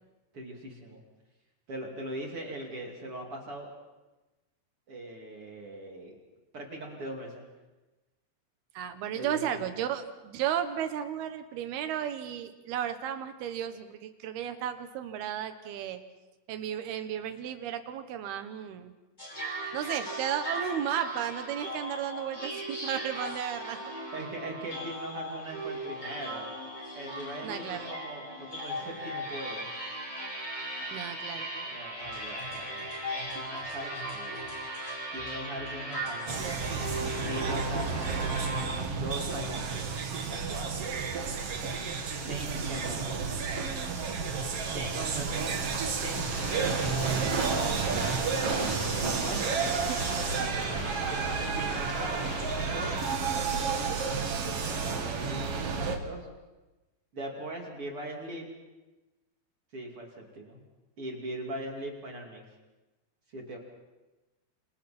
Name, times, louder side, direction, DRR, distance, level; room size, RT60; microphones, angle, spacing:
voice 1, 0.3-1.0 1.7-3.7 4.9-6.2 6.5-7.4 9.1-9.5 24.1-26.5 27.0-29.7 31.7-32.9 33.3-34.6 35.1-36.9 37.2-38.5 38.8-40.9 42.2-43.4 44.7-45.5 46.0-47.4 48.9-49.5 51.5-52.2 52.7-53.1 54.6-56.3 57.1-58.5 59.7-60.6 61.0-62.5 63.3-63.6, right 1 dB, 35° right, 0 dB, 3.0 m, -40 dB
voice 2, 8.7-16.0 16.5-18.9 19.7-23.8 27.4-27.9 30.9-31.8 49.7-50.0, right 10 dB, 70° right, 8 dB, 3.0 m, -34 dB
sound 1, 19.2-38.7, right 1 dB, 10° left, 7.9 m, -37 dB
sound 2, 36.3-56.0, right 5 dB, 50° right, 1.8 m, -31 dB
sound 3, 46.1-53.2, left 4 dB, 70° left, 4.6 m, -41 dB
28.5 x 26.5 x 4.4 m, 1.1 s
omnidirectional pair, 5.1 m